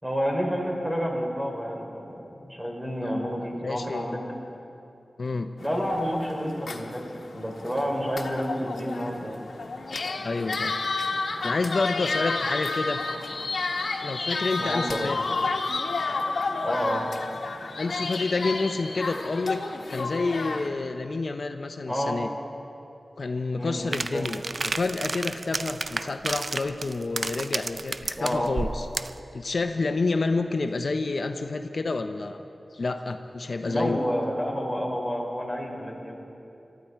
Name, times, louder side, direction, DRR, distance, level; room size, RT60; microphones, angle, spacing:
voice 1, 0.0-4.2 5.6-7.1 7.3-9.4 14.6-15.1 16.6-17.0 21.9-22.2 23.6-24.2 28.2-28.5 33.6-36.1, equal, 15° right, 0 dB, 3.4 m, -29 dB
voice 2, 3.6-4.2 5.2-5.5 10.2-10.7 11.4-13.0 14.0-15.2 17.8-19.6 19.9-22.3 23.2-28.9 29.3-32.4 32.7-34.0, left 3 dB, 65° left, 7 dB, 0.7 m, -29 dB
sound 1, 5.6-20.7, left 3 dB, 85° left, 1.1 m, -31 dB
sound 2, 23.9-29.2, right 3 dB, 55° right, 0.4 m, -32 dB
23.0 x 13.5 x 4.6 m, 2.7 s
wide cardioid pair, 70°, 0 cm